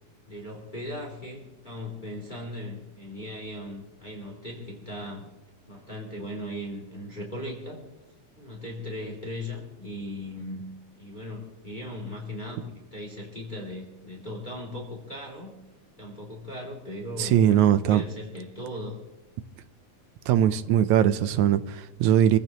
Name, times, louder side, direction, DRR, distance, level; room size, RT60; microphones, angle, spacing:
voice 1, 0.3-5.2 5.7-7.8 8.4-10.7 11.0-15.6 16.0-19.0, left 1 dB, 15° left, 2.8 m, -38 dB
voice 2, 17.2-18.0 20.3-22.4, right 10 dB, 80° right, 2.1 m, -21 dB
27.5 x 15.0 x 3.0 m
omnidirectional pair, 3.5 m